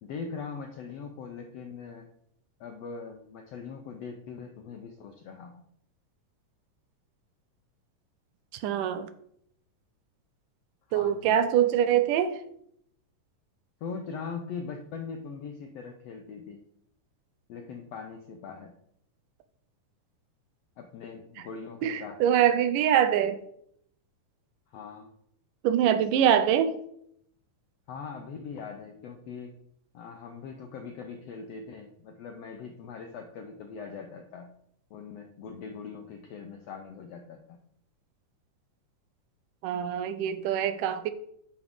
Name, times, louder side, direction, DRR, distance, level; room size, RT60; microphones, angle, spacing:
voice 1, 0.0-2.1 2.6-5.6 10.9-11.4 13.8-16.6 17.5-18.7 20.8-22.2 24.7-25.1 27.9-29.6 29.9-34.5 34.9-37.6, left 5 dB, 80° left, 1.4 m, -41 dB
voice 2, 8.6-9.1 10.9-12.4 21.8-23.4 25.6-26.8 39.6-41.1, right 9 dB, 80° right, 2.3 m, -24 dB
9.5 x 6.2 x 3.6 m
omnidirectional pair, 3.8 m